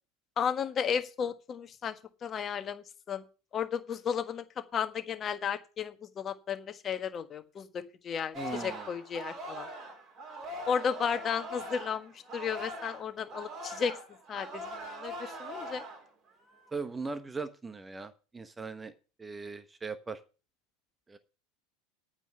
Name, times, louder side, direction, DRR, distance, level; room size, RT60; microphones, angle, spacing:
voice 1, 0.4-3.2 3.5-9.7 10.7-14.0 14.3-15.8, left 7 dB, 30° left, 9 dB, 1.5 m, -34 dB
voice 2, 8.3-8.9 16.7-18.9 19.2-20.2 21.1-21.2, right 4 dB, 15° right, 11 dB, 1.2 m, -39 dB
Singing, 8.3-13.0 13.3-16.1 16.5-16.8, right 1 dB, 40° right, 4.6 m, -42 dB
10.0 x 9.1 x 5.7 m, 0.34 s
figure-of-eight pair, 80°, 0 cm